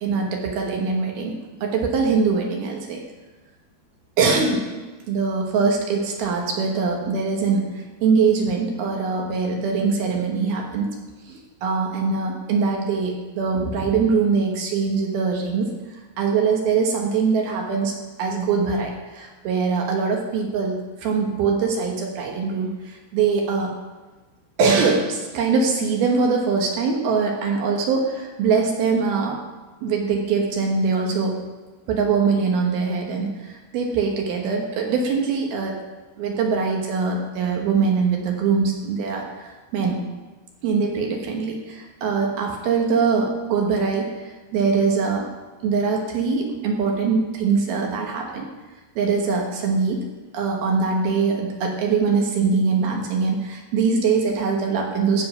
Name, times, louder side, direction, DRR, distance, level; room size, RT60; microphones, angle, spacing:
voice 1, 0.0-1.3 1.6-3.0 4.2-4.7 5.1-10.9 11.3-15.7 16.2-17.9 18.2-23.7 24.6-29.4 29.8-31.4 31.9-33.3 33.7-35.8 36.2-40.0 40.6-44.1 44.5-45.3 45.6-48.5 49.0-50.1 50.3-55.3, right 5 dB, 70° right, 0 dB, 3.0 m, -22 dB
15.0 x 5.2 x 5.7 m, 1.3 s
omnidirectional pair, 5.0 m